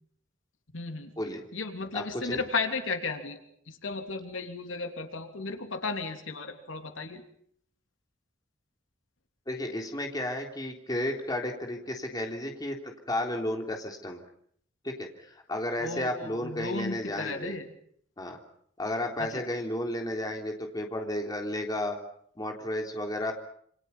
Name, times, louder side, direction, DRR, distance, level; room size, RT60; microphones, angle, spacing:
voice 1, 0.7-1.1 1.5-3.4 3.7-7.2 15.8-17.7 19.2-19.4, left 3 dB, 80° left, 5 dB, 3.0 m, -34 dB
voice 2, 1.9-2.4 9.5-14.2 14.8-17.6 18.2-18.4 18.8-22.0 22.4-23.3, left 1 dB, 20° left, 2 dB, 3.5 m, -33 dB
28.0 x 27.0 x 5.6 m, 0.65 s
head